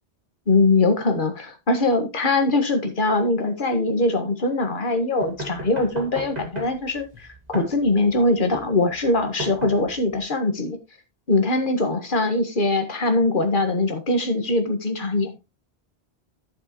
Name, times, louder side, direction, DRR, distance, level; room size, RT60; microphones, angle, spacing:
voice 1, 0.5-10.8 11.3-15.4, left 2 dB, 50° left, 1.7 m, -22 dB
sound 1, 5.2-10.2, equal, 40° right, 2.2 m, -36 dB
11.0 x 7.6 x 3.0 m
omnidirectional pair, 1.1 m